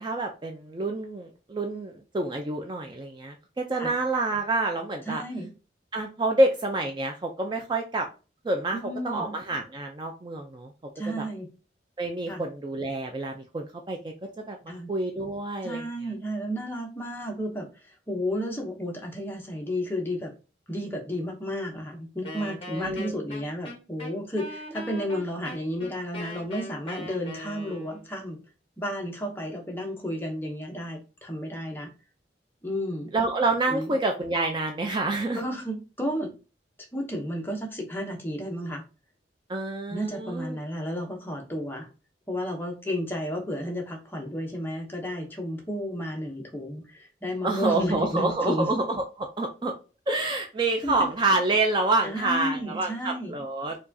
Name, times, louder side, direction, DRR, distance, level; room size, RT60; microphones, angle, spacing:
voice 1, 0.0-5.2 5.9-8.1 8.4-8.8 9.0-10.7 11.1-11.3 12.0-14.0 14.5-14.6 14.9-15.8 22.7-23.2 33.1-35.4 39.5-40.6 47.4-49.7 50.1-53.8, right 2 dB, 25° right, 3 dB, 0.4 m, -27 dB
voice 2, 5.1-5.5 8.7-9.3 10.9-11.5 12.3-12.4 14.7-14.9 15.6-20.3 20.7-28.4 28.8-31.9 32.6-33.1 33.7-33.9 35.3-36.3 36.9-38.8 39.9-41.9 42.3-48.7 50.8-51.1 52.0-53.4, equal, 10° left, 1 dB, 0.7 m, -32 dB
Wind instrument woodwind instrument, 22.2-28.1, equal, 30° left, 1.0 m, -40 dB
4.6 x 2.3 x 2.6 m, 0.32 s
head